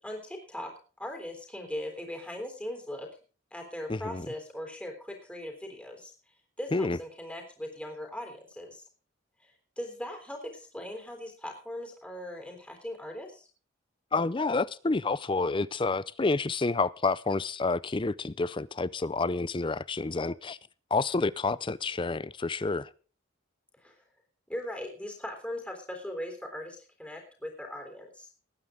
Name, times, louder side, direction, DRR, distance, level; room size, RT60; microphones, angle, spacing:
voice 1, 0.0-0.7 1.0-3.1 3.5-8.8 9.4-13.5 23.8-24.0 24.5-28.3, left 1 dB, 5° left, 3.5 m, -39 dB
voice 2, 3.9-4.3 6.7-7.0 14.1-20.6 20.9-22.9, left 3 dB, 25° left, 0.5 m, -29 dB
20.0 x 9.4 x 3.7 m
head